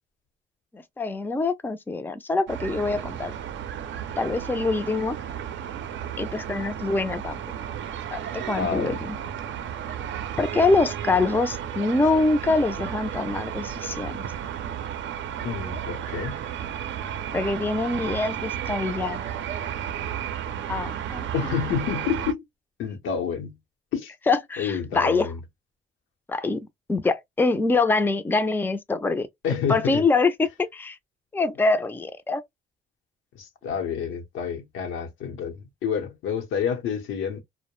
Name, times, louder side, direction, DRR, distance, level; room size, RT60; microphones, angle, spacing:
voice 1, 0.7-3.3 4.2-5.2 6.2-7.4 8.1-9.2 10.4-14.3 17.3-19.3 20.7-21.3 24.3-25.3 26.3-29.3 29.7-31.0 31.3-32.4, left 3 dB, 10° left, 0.4 m, -24 dB
sound 1, 2.5-22.3, right 9 dB, 70° right, 0.5 m, -33 dB
voice 2, 8.6-9.0 15.4-16.4 21.3-22.4 22.8-23.6 23.9-24.1 24.6-25.4 29.4-30.0 33.3-37.4, left 7 dB, 85° left, 0.8 m, -28 dB
2.2 x 2.1 x 3.0 m
cardioid pair, 90°, 20 cm